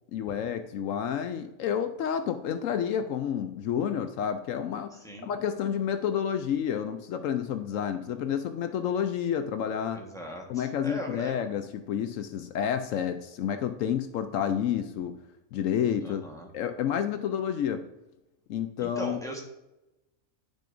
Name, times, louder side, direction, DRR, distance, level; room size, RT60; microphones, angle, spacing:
voice 1, 0.1-4.9 5.2-10.0 10.5-15.2 15.5-16.2 16.5-17.9 18.5-19.2, left 8 dB, 70° left, 9 dB, 0.9 m, -30 dB
voice 2, 4.9-5.3 9.9-11.4 16.0-16.5 18.8-19.4, equal, 5° left, -1 dB, 1.1 m, -39 dB
10.0 x 6.5 x 2.6 m, 0.96 s
omnidirectional pair, 1.5 m